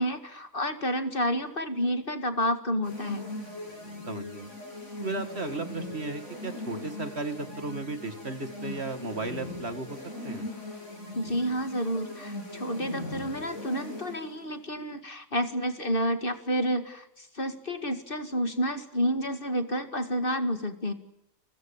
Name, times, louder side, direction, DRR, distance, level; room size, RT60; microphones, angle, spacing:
voice 1, 0.0-3.2 11.1-20.9, equal, 40° left, 8 dB, 2.2 m, -30 dB
sound 1, 2.8-14.4, left 1 dB, 55° left, 8.6 m, -40 dB
voice 2, 4.1-4.5 5.0-10.5, right 3 dB, 50° right, 9 dB, 2.3 m, -35 dB
29.5 x 22.5 x 7.3 m, 0.83 s
omnidirectional pair, 1.5 m